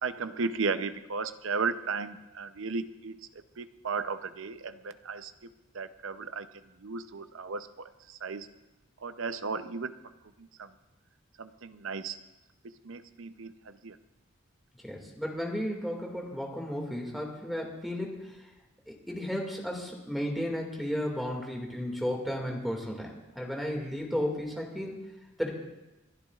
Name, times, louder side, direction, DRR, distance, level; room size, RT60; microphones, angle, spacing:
voice 1, 0.0-8.5 9.0-9.9 10.4-10.7 11.4-12.2 12.6-14.0, right 4 dB, 75° right, 11 dB, 0.7 m, -35 dB
voice 2, 14.8-18.4 18.9-25.0 25.4-25.5, equal, ahead, 0 dB, 2.1 m, -34 dB
29.5 x 12.0 x 2.4 m, 1.0 s
head